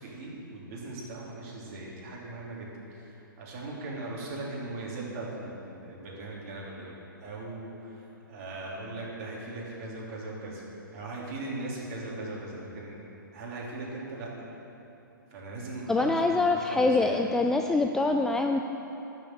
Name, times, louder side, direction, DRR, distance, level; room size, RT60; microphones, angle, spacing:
voice 1, 0.0-10.7 10.9-13.0 13.3-14.3 15.3-17.1, right 2 dB, 45° right, -4 dB, 3.3 m, -39 dB
voice 2, 15.9-18.6, left 3 dB, 5° left, 3 dB, 0.3 m, -24 dB
12.0 x 6.9 x 8.0 m, 2.9 s
hypercardioid pair, 130°, 11 cm